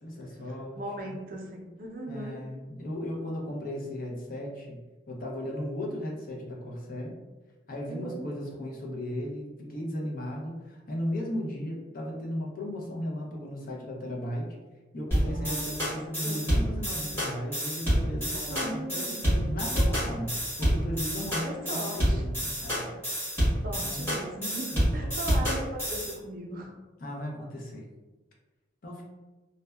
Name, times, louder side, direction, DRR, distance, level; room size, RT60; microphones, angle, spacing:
voice 1, 0.0-1.2 2.1-4.8 5.1-7.1 7.7-14.6 14.9-19.1 19.4-23.0 23.8-24.2 25.0-25.1 27.0-27.8 28.8-29.0, left 1 dB, 50° left, -2 dB, 0.5 m, -36 dB
voice 2, 0.8-2.5 7.9-8.3 15.2-15.7 16.2-16.5 18.3-19.6 21.4-22.2 23.6-26.7, right 1 dB, 50° right, 0 dB, 0.4 m, -38 dB
sound 1, 15.1-26.1, equal, 15° left, 1.2 m, -28 dB
2.6 x 2.1 x 2.2 m, 1.2 s
head